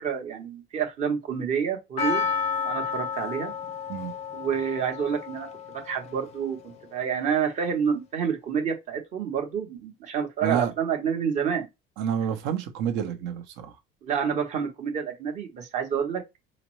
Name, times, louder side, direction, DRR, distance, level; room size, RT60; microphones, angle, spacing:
voice 1, 0.0-2.2 2.6-3.5 4.3-5.5 5.7-11.7 14.0-16.2, right 7 dB, 35° right, 1.0 m, -28 dB
Percussion, 2.0-6.3 6.6-6.7, left 6 dB, 30° left, 0.5 m, -31 dB
voice 2, 10.4-10.7 12.0-13.8, right 8 dB, 65° right, 0.9 m, -28 dB
5.0 x 2.0 x 3.0 m
cardioid pair, 175°, 20 cm